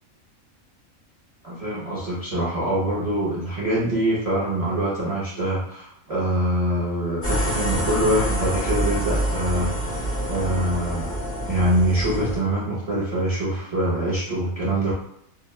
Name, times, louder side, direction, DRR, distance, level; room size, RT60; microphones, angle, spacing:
voice 1, 1.4-9.7 10.3-11.2 11.5-14.9, right 1 dB, 55° right, -7 dB, 0.4 m, -24 dB
sound 1, 7.2-12.4, right 1 dB, 15° left, 0.6 m, -26 dB
2.8 x 2.1 x 2.2 m, 0.75 s
omnidirectional pair, 1.5 m